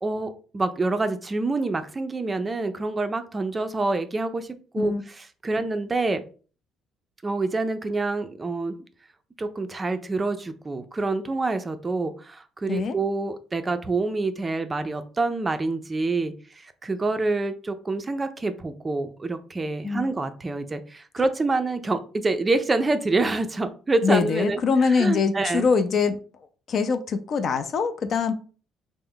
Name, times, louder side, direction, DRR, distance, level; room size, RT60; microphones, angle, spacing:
voice 1, 0.0-4.5 4.7-6.2 7.2-8.7 9.4-25.7, right 3 dB, 25° right, 9 dB, 0.4 m, -27 dB
voice 2, 24.0-26.2 26.7-28.3, left 5 dB, 50° left, 10 dB, 0.4 m, -23 dB
3.2 x 2.0 x 3.7 m, 0.38 s
cardioid pair, 105°, 0 cm